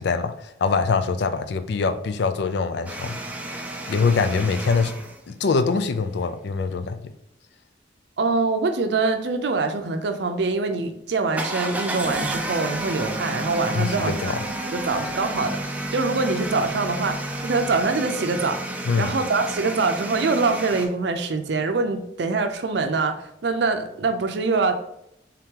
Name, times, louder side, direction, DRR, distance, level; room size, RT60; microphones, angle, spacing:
voice 1, 0.0-3.2 3.9-4.9 5.3-7.0 13.7-14.4 18.8-19.1, left 4 dB, 65° left, 10 dB, 0.4 m, -23 dB
sound 1, 2.9-5.2 11.3-20.9, right 1 dB, 10° right, 0.4 m, -31 dB
voice 2, 8.2-14.3 14.7-24.7, right 3 dB, 65° right, 7 dB, 0.5 m, -24 dB
3.6 x 2.9 x 3.6 m, 0.78 s
head